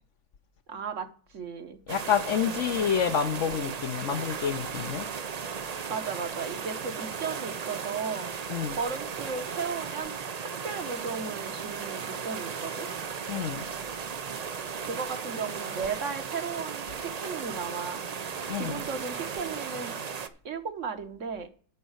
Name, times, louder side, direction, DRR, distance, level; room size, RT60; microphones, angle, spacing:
voice 1, 0.7-1.1 1.3-1.8 5.9-8.3 8.7-10.1 10.4-12.9 14.8-18.0 18.6-19.9 20.4-21.5, right 5 dB, 60° right, 1.1 m, -35 dB
voice 2, 1.9-5.1 8.5-8.8 13.3-13.6 18.5-18.9, left 8 dB, 60° left, 0.9 m, -28 dB
sound 1, 1.9-20.3, right 6 dB, 85° right, 0.3 m, -36 dB
11.0 x 4.1 x 7.8 m
omnidirectional pair, 1.6 m